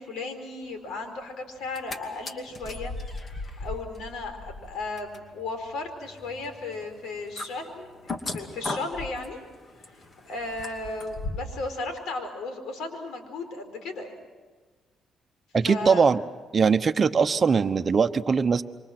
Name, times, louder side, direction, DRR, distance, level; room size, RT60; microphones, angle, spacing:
voice 1, 0.0-2.9 3.6-9.4 10.2-14.1 15.6-16.1, left 3 dB, 80° left, 7 dB, 4.6 m, -35 dB
sound 1, 1.6-2.0 2.2-11.6 12.0-12.1, left 2 dB, 40° left, 2.5 m, -38 dB
voice 2, 15.5-16.2 16.5-18.6, right 5 dB, 40° right, 8 dB, 1.0 m, -21 dB
28.0 x 24.5 x 6.1 m, 1.4 s
cardioid pair, 90°, 0 cm